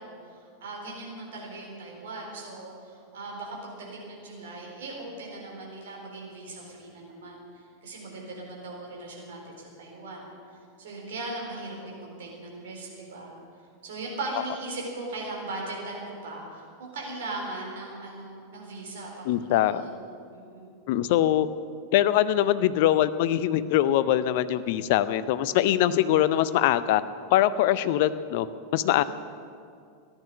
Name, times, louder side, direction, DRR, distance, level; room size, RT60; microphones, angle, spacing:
voice 1, 0.0-10.3 10.8-13.3 13.8-20.0 20.3-20.8 28.9-29.1, right 2 dB, 65° right, -1 dB, 4.1 m, -39 dB
voice 2, 19.3-19.8 20.9-21.5 21.9-27.0 27.3-28.5 28.7-29.0, left 12 dB, 55° left, 15 dB, 0.6 m, -23 dB
14.5 x 11.0 x 7.0 m, 2.3 s
figure-of-eight pair, 90°, 0 cm